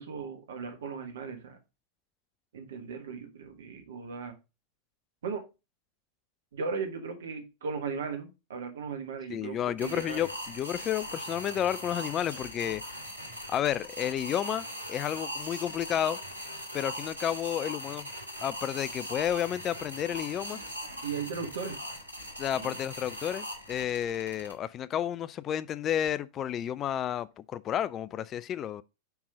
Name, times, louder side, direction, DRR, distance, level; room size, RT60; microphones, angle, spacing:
voice 1, 0.0-1.6 2.5-4.4 5.2-5.4 6.5-10.2 21.0-21.8 22.5-22.8, right 5 dB, 60° right, 1.5 m, -37 dB
voice 2, 9.3-12.8 13.5-16.2 16.7-18.1 18.4-20.6 22.4-28.8, left 10 dB, 30° left, 0.3 m, -31 dB
sound 1, 9.8-24.5, equal, 85° right, 1.5 m, -40 dB
5.4 x 4.6 x 5.0 m
figure-of-eight pair, 90°, 0 cm